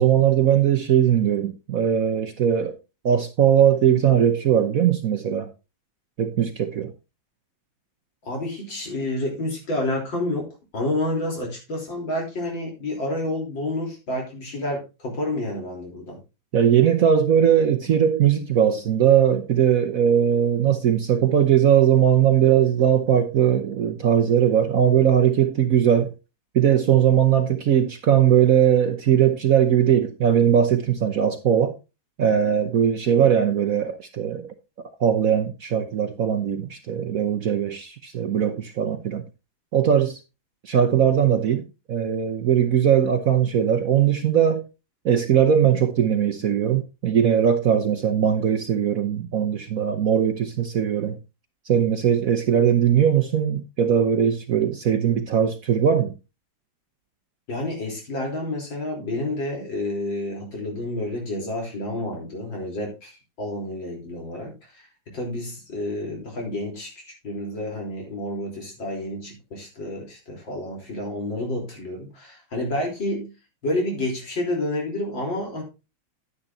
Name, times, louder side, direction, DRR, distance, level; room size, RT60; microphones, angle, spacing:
voice 1, 0.0-2.7 3.0-5.5 6.2-6.9 16.5-26.1 26.5-31.8 32.2-34.5 35.0-39.2 39.7-40.2 40.6-44.6 45.0-51.2 51.7-56.1, right 9 dB, 55° right, 1.0 m, -20 dB
voice 2, 8.2-16.2 57.5-64.8 65.1-73.3 73.6-75.6, left 1 dB, 70° left, 4.3 m, -29 dB
10.0 x 9.9 x 2.7 m
omnidirectional pair, 2.2 m